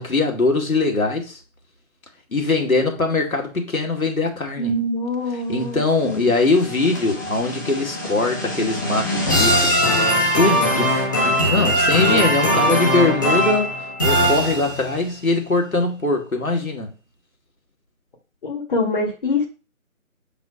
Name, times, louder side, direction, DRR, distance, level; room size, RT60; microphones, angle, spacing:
voice 1, 0.0-1.4 2.3-4.7 5.5-10.1 10.3-16.9, left 3 dB, 90° left, 2.1 m, -22 dB
voice 2, 4.6-6.3 18.4-19.5, left 2 dB, 40° left, 1.7 m, -24 dB
sound 1, 6.1-15.0, equal, 15° left, 0.9 m, -21 dB
7.0 x 2.8 x 4.9 m
figure-of-eight pair, 155°, 41 cm